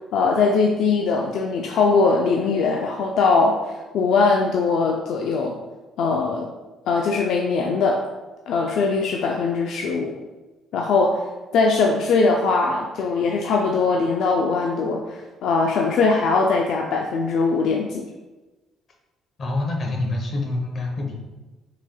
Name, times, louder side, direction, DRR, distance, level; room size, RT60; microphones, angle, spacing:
voice 1, 0.1-5.6 6.0-6.5 6.9-8.0 8.5-10.2 10.7-11.2 11.5-18.0, left 4 dB, 75° left, 1 dB, 0.4 m, -21 dB
voice 2, 19.4-21.1, left 2 dB, 50° left, 1 dB, 0.9 m, -26 dB
4.9 x 3.6 x 2.3 m, 1.1 s
cardioid pair, 95°, 0 cm